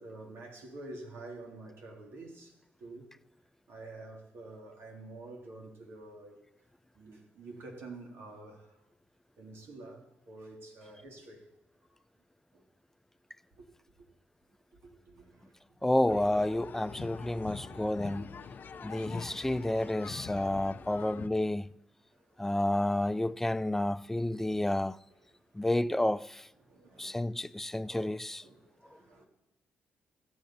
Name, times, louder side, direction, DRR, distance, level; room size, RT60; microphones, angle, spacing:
voice 1, 0.0-3.2 3.7-6.4 6.9-8.9 9.4-11.5 12.5-12.6 13.6-13.7 14.7-15.8 17.4-17.9 18.4-19.1 19.5-19.7 20.7-21.2 22.1-22.4 25.1-25.2 25.5-25.6 26.6-27.2 28.4-29.3, right 2 dB, 75° right, 2.1 m, -49 dB
voice 2, 15.8-18.3 18.8-21.7 22.4-25.0 25.5-26.5 27.0-28.4, left 1 dB, 10° left, 0.3 m, -30 dB
sound 1, 16.1-21.3, left 6 dB, 50° left, 0.6 m, -44 dB
15.5 x 7.8 x 4.1 m
cardioid pair, 80°, 4 cm